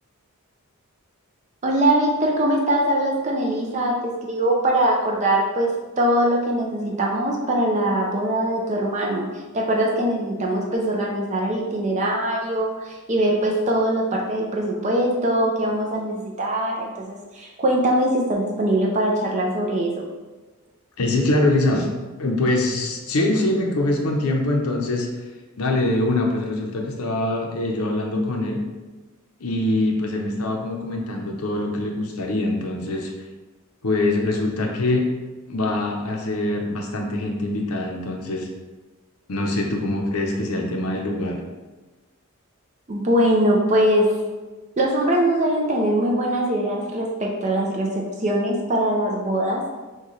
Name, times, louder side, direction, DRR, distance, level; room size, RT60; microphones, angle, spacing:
voice 1, 1.6-9.3 9.5-20.1 42.9-44.2 44.8-49.6, right 1 dB, 30° right, -1 dB, 0.5 m, -22 dB
voice 2, 21.0-21.9 22.2-25.1 25.6-28.6 29.4-33.1 33.8-35.1 35.5-38.5 39.3-41.4, left 2 dB, 75° left, 1 dB, 0.7 m, -23 dB
6.3 x 2.3 x 3.1 m, 1.2 s
head